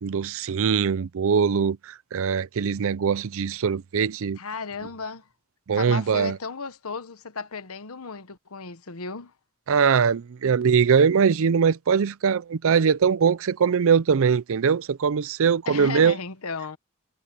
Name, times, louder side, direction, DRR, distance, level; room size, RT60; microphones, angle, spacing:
voice 1, 0.0-4.4 5.7-6.4 9.7-16.2, right 6 dB, 65° right, 0.5 m, -22 dB
voice 2, 4.4-5.3 5.7-9.3 15.6-16.8, left 4 dB, 75° left, 1.2 m, -35 dB
head